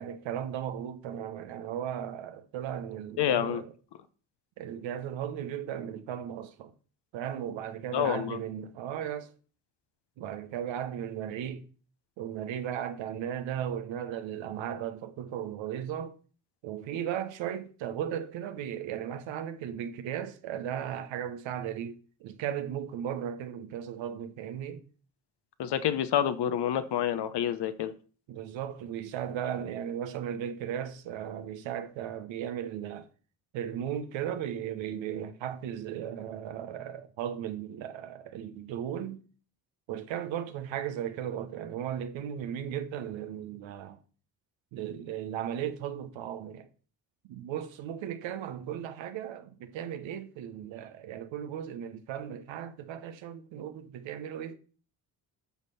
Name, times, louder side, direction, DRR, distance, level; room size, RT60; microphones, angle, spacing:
voice 1, 0.0-3.7 4.6-6.7 7.1-9.3 10.2-11.7 12.2-16.1 16.6-24.8 28.3-33.1 33.5-39.2 39.9-44.0 44.7-46.7 47.2-54.6, right 9 dB, 70° right, 1.2 m, -36 dB
voice 2, 3.2-3.6 7.9-8.4 25.6-27.9, left 10 dB, 55° left, 1.1 m, -28 dB
9.7 x 6.3 x 4.3 m
hypercardioid pair, 50°, 48 cm